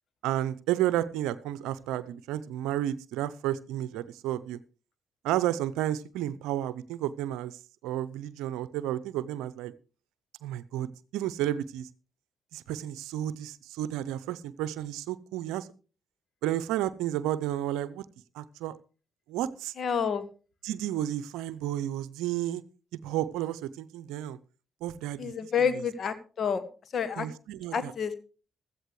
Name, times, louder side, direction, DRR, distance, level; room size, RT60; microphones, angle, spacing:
voice 1, 0.2-4.6 5.2-7.5 7.8-9.7 10.4-11.9 12.5-15.7 16.4-18.0 18.3-18.7 19.3-19.7 20.6-22.6 23.0-24.4 24.8-25.8 27.2-28.2, right 12 dB, 75° right, 16 dB, 0.6 m, -32 dB
voice 2, 19.8-20.2 25.2-26.6 26.9-27.3 27.7-28.1, left 7 dB, 55° left, 12 dB, 1.7 m, -28 dB
15.5 x 14.0 x 3.2 m, 0.36 s
hypercardioid pair, 40°, 0 cm